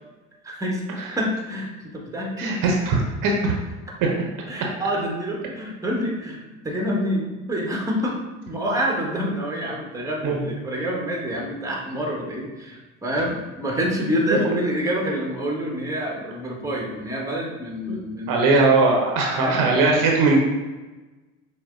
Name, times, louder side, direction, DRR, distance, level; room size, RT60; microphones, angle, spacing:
voice 1, 0.4-0.8 1.1-2.5 4.5-8.2 8.5-18.6 19.3-19.6, equal, 10° right, -1 dB, 1.1 m, -27 dB
voice 2, 2.4-3.5 10.2-10.4 17.9-18.0 18.3-20.4, right 3 dB, 55° right, 0 dB, 0.9 m, -19 dB
6.2 x 2.1 x 3.7 m, 1.2 s
hypercardioid pair, 60°, 40 cm